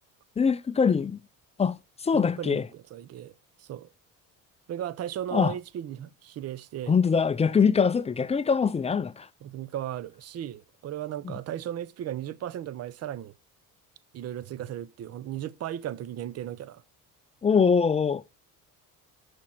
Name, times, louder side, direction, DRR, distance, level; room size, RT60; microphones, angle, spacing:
voice 1, 0.4-1.2 1.6-1.8 2.0-2.6 5.3-5.5 6.9-9.3 17.4-18.2, left 6 dB, 20° left, 0.4 m, -23 dB
voice 2, 2.1-3.9 4.7-7.0 9.4-13.3 14.1-16.8, right 11 dB, 45° right, 0.6 m, -36 dB
6.6 x 6.2 x 5.6 m
cardioid pair, 110°, 34 cm